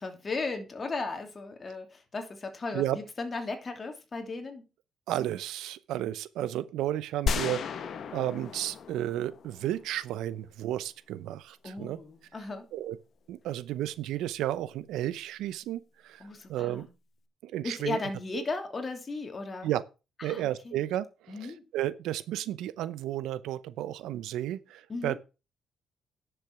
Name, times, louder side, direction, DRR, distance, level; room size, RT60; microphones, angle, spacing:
voice 1, 0.0-4.6 11.6-12.7 16.2-16.9 17.6-19.7 20.2-20.8 21.3-21.6 24.9-25.2, left 3 dB, 35° left, 2.8 m, -36 dB
voice 2, 5.1-12.0 12.7-13.0 13.3-16.2 16.5-16.9 17.4-18.0 18.3-18.4 19.6-19.8 20.2-25.2, right 13 dB, 90° right, 0.7 m, -33 dB
sound 1, 7.3-10.2, left 6 dB, 60° left, 1.2 m, -34 dB
10.5 x 6.9 x 6.0 m
cardioid pair, 90°, 0 cm